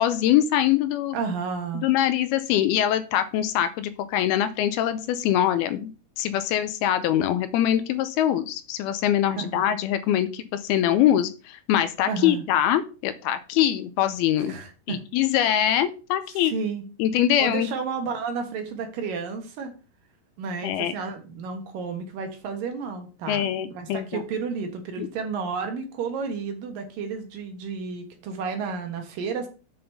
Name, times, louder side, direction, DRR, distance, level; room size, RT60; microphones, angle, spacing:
voice 1, 0.0-1.2 1.7-14.6 14.9-16.5 17.0-17.7 20.6-20.9 23.3-24.2 25.0-25.1, left 11 dB, 80° left, 11 dB, 2.5 m, -23 dB
voice 2, 1.1-1.9 9.4-9.6 12.1-12.4 14.4-15.0 16.4-16.8 17.4-19.7 20.4-29.5, right 5 dB, 65° right, 5 dB, 2.8 m, -31 dB
7.8 x 5.4 x 5.5 m, 0.33 s
omnidirectional pair, 4.6 m